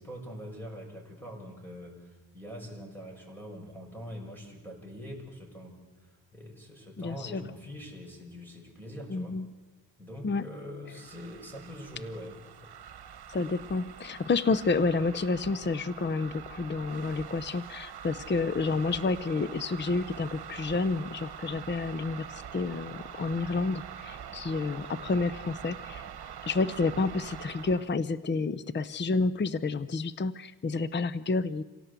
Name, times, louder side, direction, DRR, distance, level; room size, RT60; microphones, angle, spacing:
voice 1, 0.0-9.3 10.0-12.7, equal, 5° left, 0 dB, 6.0 m, -43 dB
voice 2, 7.0-7.4 9.1-9.5 10.2-10.4 13.3-22.3 22.5-26.0 26.4-31.6, left 3 dB, 30° left, 15 dB, 0.6 m, -29 dB
sound 1, 10.9-27.9, right 8 dB, 80° right, 1.1 m, -44 dB
27.0 x 17.0 x 8.2 m, 1.2 s
wide cardioid pair, 120°, 38 cm